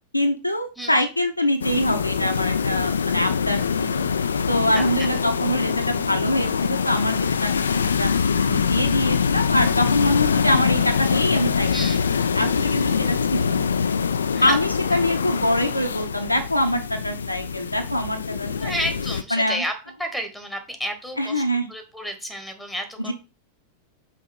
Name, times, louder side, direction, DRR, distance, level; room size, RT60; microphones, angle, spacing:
voice 1, 0.1-4.0 4.5-8.1 8.4-11.8 12.3-13.7 14.4-18.7 19.3-19.6 21.2-21.7 23.0-23.1, left 1 dB, 90° left, 4 dB, 0.9 m, -24 dB
sound 1, 1.6-19.2, left 6 dB, 70° left, 0.4 m, -24 dB
voice 2, 4.8-5.1 11.7-12.0 14.3-14.6 18.6-19.7 20.0-21.4 21.7-23.1, equal, ahead, 7 dB, 1.5 m, -31 dB
5.8 x 4.6 x 4.5 m, 0.31 s
figure-of-eight pair, 90°, 0 cm